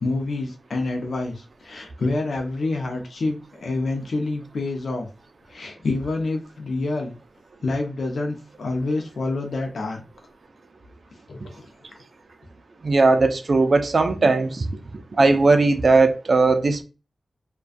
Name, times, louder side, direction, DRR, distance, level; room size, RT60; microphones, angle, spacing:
voice 1, 0.0-5.1 5.5-7.1 7.6-10.0 11.3-11.6, left 2 dB, 80° left, 0.5 m, -27 dB
voice 2, 12.8-14.7 15.2-16.8, right 3 dB, 55° right, 0.4 m, -18 dB
2.5 x 2.2 x 2.3 m
wide cardioid pair, 100°, 0 cm